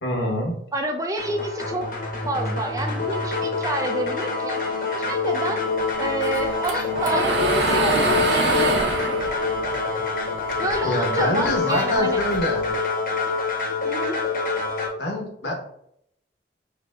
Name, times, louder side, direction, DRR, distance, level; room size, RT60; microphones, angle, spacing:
voice 1, 0.0-0.5 10.8-12.6 15.0-15.5, left 1 dB, 80° left, 1 dB, 1.0 m, -25 dB
voice 2, 0.7-1.9 2.2-5.6 6.0-9.1 10.6-12.2 13.8-14.2, right 1 dB, 20° right, 4 dB, 0.4 m, -29 dB
sound 1, 1.2-14.9, left 4 dB, 50° left, 0.9 m, -26 dB
sound 2, 6.2-10.8 11.1-12.7, right 2 dB, 80° right, 0.6 m, -24 dB
4.9 x 2.7 x 2.3 m, 0.72 s
head